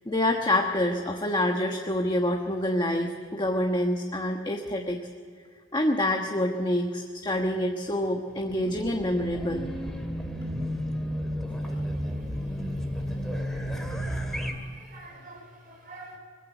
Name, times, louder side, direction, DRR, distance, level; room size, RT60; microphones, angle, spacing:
voice 1, 0.1-5.0 5.7-9.6, left 1 dB, 20° left, 2 dB, 1.2 m, -27 dB
Race car auto racing / Alarm, 8.3-14.5, equal, ahead, 2.2 m, -32 dB
voice 2, 14.1-16.2, right 2 dB, 45° right, 1 dB, 4.3 m, -47 dB
21.5 x 15.0 x 8.2 m, 2.1 s
head